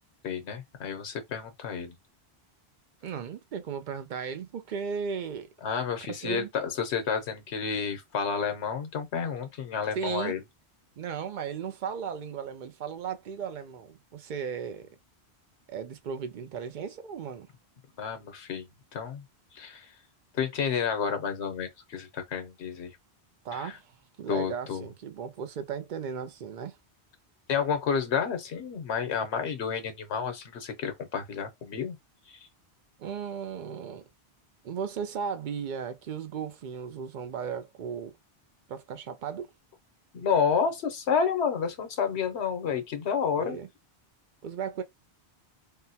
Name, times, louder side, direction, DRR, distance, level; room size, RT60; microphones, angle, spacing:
voice 1, 0.2-1.9 5.6-10.4 18.0-18.7 18.9-19.2 19.5-19.9 20.4-22.9 23.5-23.8 24.3-24.8 27.5-32.0 32.3-32.4 40.1-43.6, left 6 dB, 85° left, 1.1 m, -30 dB
voice 2, 3.0-5.5 6.1-6.5 9.9-10.3 11.0-14.9 15.7-17.5 23.4-23.9 24.2-26.8 33.0-34.1 34.6-38.2 38.7-39.5 43.4-43.7 44.4-44.8, right 7 dB, 60° right, 0.6 m, -36 dB
3.6 x 2.1 x 2.7 m
omnidirectional pair, 1.1 m